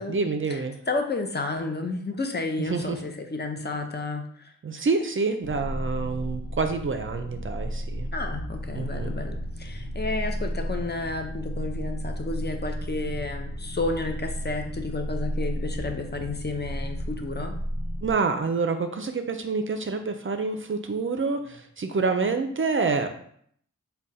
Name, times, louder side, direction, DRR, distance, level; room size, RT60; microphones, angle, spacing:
voice 1, 0.0-0.7 2.6-3.0 4.6-8.1 8.7-9.1 18.0-23.1, right 4 dB, 40° right, 7 dB, 0.4 m, -27 dB
voice 2, 0.9-4.5 8.1-17.6, left 3 dB, 35° left, 4 dB, 0.6 m, -31 dB
sound 1, 5.4-18.1, equal, 85° left, 1.2 m, -33 dB
3.4 x 2.2 x 4.0 m, 0.63 s
cardioid pair, 50°, 31 cm